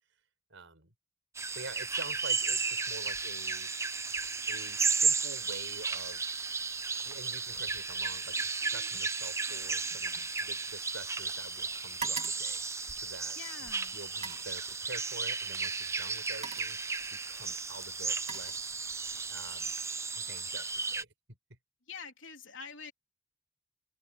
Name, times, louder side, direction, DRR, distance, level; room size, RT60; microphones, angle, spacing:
voice 1, 0.5-0.9 1.5-3.7 4.5-6.2 7.0-12.6 13.0-18.7 19.3-19.7 20.1-21.1, right 3 dB, 65° right, 6.7 m, -47 dB
sound 1, 1.3-21.0, right 4 dB, 15° right, 0.6 m, -34 dB
sound 2, 7.5-7.9 8.2-11.3 11.6-13.5 14.1-14.6 15.6-15.8 16.2-16.9 17.7-19.1 19.5-19.9, right 5 dB, 30° right, 3.0 m, -45 dB
voice 2, 13.4-14.0 21.9-22.9, left 5 dB, 60° left, 3.8 m, -45 dB
open air
head